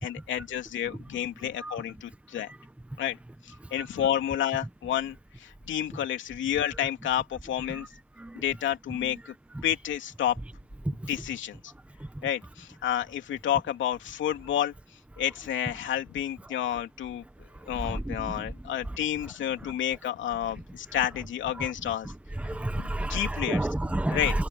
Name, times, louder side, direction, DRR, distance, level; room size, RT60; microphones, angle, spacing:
voice 1, 0.0-2.5 3.0-3.2 3.4-7.9 8.3-9.3 9.6-10.4 11.1-11.6 12.2-14.7 15.2-17.2 17.7-22.1 22.7-23.7 24.1-24.3, left 10 dB, 70° left, 2.9 m, -30 dB
voice 2, 1.4-1.8 2.5-2.6 3.6-3.9 7.7-7.9 8.2-8.4 9.0-9.2 9.5-9.6 10.8-11.1 12.0-12.3 16.4-16.5 17.5-18.5 18.9-19.0 21.5-21.7 22.0-24.5, right 1 dB, 5° right, 1.0 m, -32 dB
cardioid pair, 90°, 20 cm